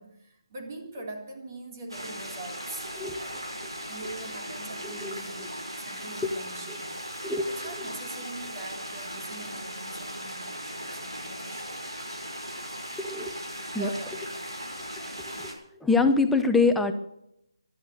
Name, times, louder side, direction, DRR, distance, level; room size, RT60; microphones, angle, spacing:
voice 1, 0.0-2.8 3.2-3.5 3.9-11.8 13.7-14.2, right 2 dB, 40° right, 3 dB, 3.6 m, -43 dB
sound 1, 1.9-15.5, equal, 85° right, 6.1 m, -38 dB
voice 2, 13.0-13.3 13.7-13.9 15.3-15.5 15.8-16.9, left 3 dB, 5° left, 6 dB, 1.0 m, -24 dB
17.5 x 12.0 x 6.6 m, 0.76 s
figure-of-eight pair, 150°, 2 cm